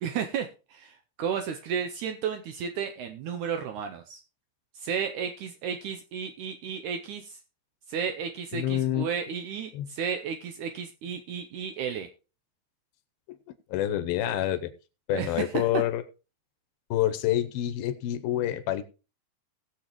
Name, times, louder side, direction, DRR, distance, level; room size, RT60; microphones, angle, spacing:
voice 1, 0.0-4.2 4.8-7.4 7.9-12.1 15.1-15.8, right 7 dB, 80° right, 6 dB, 1.8 m, -33 dB
voice 2, 8.5-9.1 9.7-9.9 13.3-13.4 13.7-14.7 15.1-16.0 16.9-18.8, left 12 dB, 85° left, 11 dB, 2.7 m, -27 dB
19.5 x 7.0 x 3.0 m, 0.32 s
omnidirectional pair, 4.2 m